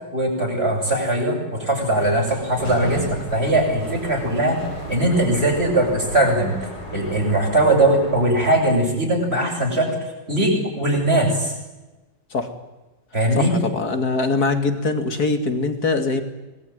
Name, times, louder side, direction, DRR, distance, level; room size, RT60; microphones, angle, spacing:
voice 1, 0.1-4.6 4.9-6.5 6.9-9.9 10.3-11.5 13.1-13.5, right 1 dB, 35° right, 0 dB, 8.4 m, -20 dB
Sliding door, 1.6-8.9, equal, 85° left, 6.9 m, -35 dB
voice 2, 13.4-16.2, left 3 dB, 60° left, 7 dB, 3.2 m, -22 dB
26.0 x 20.5 x 9.6 m, 1.1 s
omnidirectional pair, 1.9 m